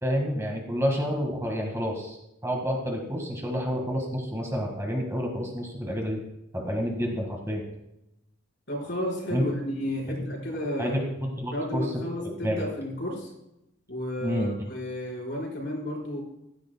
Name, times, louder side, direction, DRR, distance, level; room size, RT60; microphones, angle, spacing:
voice 1, 0.0-2.2 2.4-6.2 6.5-7.6 9.3-9.4 10.8-11.9 12.4-12.6 14.2-14.5, equal, 15° right, 0 dB, 1.7 m, -29 dB
voice 2, 8.7-11.0 11.5-13.3 13.9-16.2, left 1 dB, 60° left, -3 dB, 5.0 m, -32 dB
15.5 x 13.5 x 2.3 m, 0.86 s
head